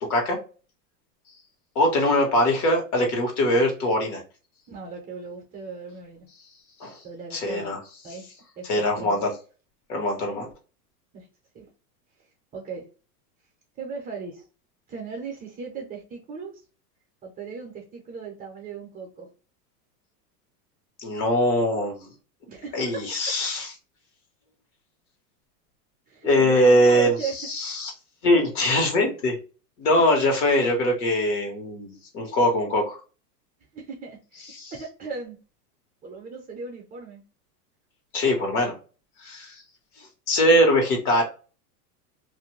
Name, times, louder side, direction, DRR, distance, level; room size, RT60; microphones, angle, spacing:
voice 1, 1.7-4.2 6.8-7.0 7.3-7.8 8.7-9.3 9.9-10.5 21.0-22.1 22.7-23.7 26.2-27.9 28.2-29.4 29.8-33.0 34.5-34.7 38.1-38.7 39.2-39.6 40.0-41.2, left 1 dB, 60° left, 2 dB, 1.3 m, -22 dB
voice 2, 4.7-6.3 7.0-7.7 8.0-8.2 8.6-9.2 11.1-11.3 11.5-11.6 12.5-12.8 13.8-14.5 14.9-16.6 17.2-19.3 22.5-23.1 26.1-27.3 33.7-34.5 34.7-35.4 36.0-37.2, right 5 dB, 20° right, 1 dB, 0.6 m, -37 dB
2.6 x 2.1 x 3.1 m, 0.35 s
supercardioid pair, 135°, 48 cm